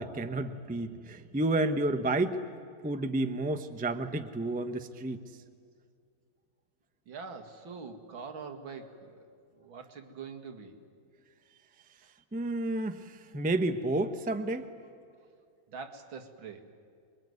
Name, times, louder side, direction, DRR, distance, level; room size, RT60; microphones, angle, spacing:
voice 1, 0.0-2.4 2.8-5.2 12.3-14.7, right 2 dB, 10° right, 8 dB, 0.5 m, -31 dB
voice 2, 7.1-9.3 9.5-10.8 15.1-15.3 15.7-16.6, right 5 dB, 80° right, 5 dB, 2.7 m, -44 dB
27.0 x 22.0 x 9.5 m, 2.3 s
omnidirectional pair, 2.1 m